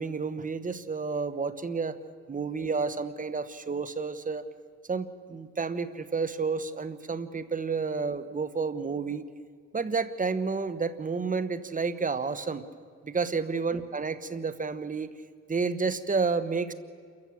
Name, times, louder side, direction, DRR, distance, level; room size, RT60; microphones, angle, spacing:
voice 1, 0.0-2.0 2.3-4.4 4.9-9.2 9.7-12.6 13.0-15.1 15.5-16.7, right 4 dB, 25° right, 13 dB, 1.3 m, -30 dB
28.0 x 14.5 x 7.9 m, 2.1 s
cardioid pair, 90°, 30 cm